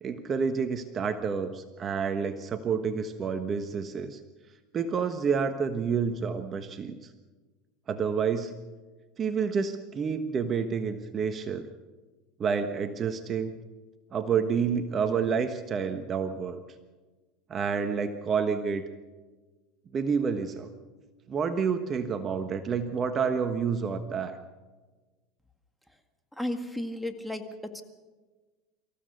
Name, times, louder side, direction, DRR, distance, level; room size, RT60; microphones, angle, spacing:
voice 1, 0.0-4.2 4.7-7.0 7.9-8.5 9.2-11.7 12.4-13.5 14.1-16.6 17.5-18.8 19.9-20.7 21.3-24.4, right 6 dB, 35° right, 8 dB, 1.3 m, -29 dB
voice 2, 26.4-27.8, left 1 dB, ahead, 6 dB, 2.0 m, -34 dB
25.5 x 15.0 x 6.7 m, 1.3 s
supercardioid pair, 105°, 0 cm